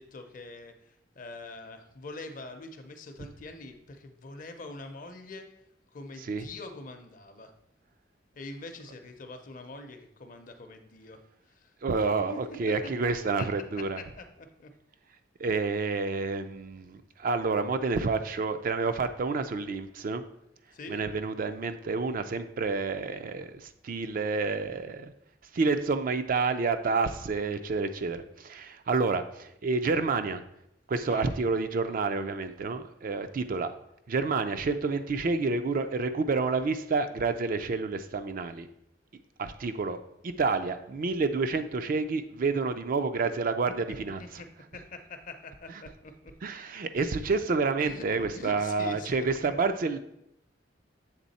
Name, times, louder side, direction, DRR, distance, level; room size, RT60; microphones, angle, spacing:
voice 1, 0.0-5.5 5.9-7.5 8.4-11.2 11.5-11.7 12.3-12.4 12.7-12.9 13.4-13.5 14.0-14.7 20.7-21.0 31.1-31.3 44.2-44.5 44.7-46.1 47.8-48.1 48.3-49.1, left 2 dB, 45° left, 7 dB, 0.6 m, -44 dB
voice 2, 11.8-14.0 15.4-20.2 20.9-25.1 25.5-30.4 30.9-33.7 34.1-38.7 39.4-40.0 40.2-44.2 46.4-50.0, right 4 dB, 50° right, 9 dB, 0.4 m, -29 dB
7.4 x 3.5 x 4.1 m, 0.79 s
head